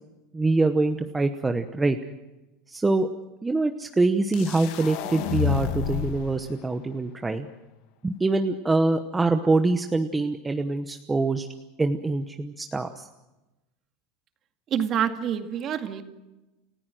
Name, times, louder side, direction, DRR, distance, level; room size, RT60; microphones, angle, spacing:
voice 1, 0.3-2.0 2.7-3.1 3.4-7.5 8.0-11.5 11.8-13.1, right 3 dB, 10° right, 7 dB, 1.0 m, -24 dB
sound 1, 4.3-6.3, left 12 dB, 60° left, 1.8 m, -29 dB
voice 2, 14.7-16.0, right 9 dB, 35° right, 7 dB, 2.0 m, -27 dB
29.5 x 14.5 x 7.8 m, 1.0 s
supercardioid pair, 140°, 0 cm